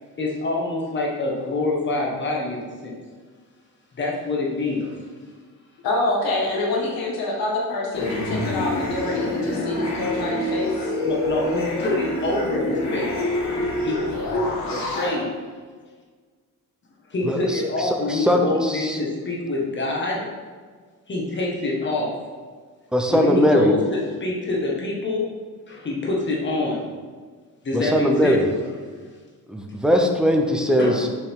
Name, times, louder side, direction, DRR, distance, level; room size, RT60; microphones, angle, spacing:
voice 1, 0.2-2.9 4.0-4.9 11.0-13.1 13.8-13.9 14.3-14.4 14.7-15.2 17.1-20.2 21.1-22.1 23.1-25.3 25.7-26.8 27.6-28.4 30.8-31.0, left 2 dB, 30° left, -2 dB, 1.5 m, -25 dB
voice 2, 5.8-10.9, left 2 dB, 90° left, -2 dB, 1.8 m, -26 dB
sound 1, 7.9-15.1, left 2 dB, 50° left, 1.9 m, -26 dB
voice 3, 17.2-19.0 22.9-23.7 27.7-28.5 29.5-31.1, equal, ahead, 2 dB, 0.7 m, -20 dB
7.2 x 5.5 x 3.7 m, 1.5 s
cardioid pair, 150°, 35 cm